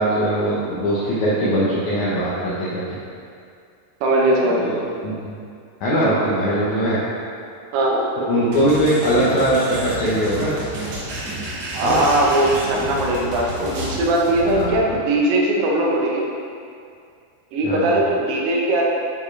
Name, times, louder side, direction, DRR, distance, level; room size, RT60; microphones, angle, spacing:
voice 1, 0.0-3.0 4.6-4.8 5.0-5.3 5.8-7.0 8.3-10.5 11.8-12.1 14.4-15.0 17.6-18.0, right 1 dB, 75° left, -9 dB, 1.7 m, -21 dB
voice 2, 4.0-4.7 7.7-8.0 11.7-16.2 17.5-18.8, right 1 dB, 80° right, -2 dB, 3.0 m, -19 dB
sound 1, 8.5-14.0, right 2 dB, 65° right, 2.0 m, -31 dB
sound 2, 9.6-14.8, left 1 dB, 50° left, 2.4 m, -34 dB
9.4 x 4.7 x 3.2 m, 2.4 s
omnidirectional pair, 4.7 m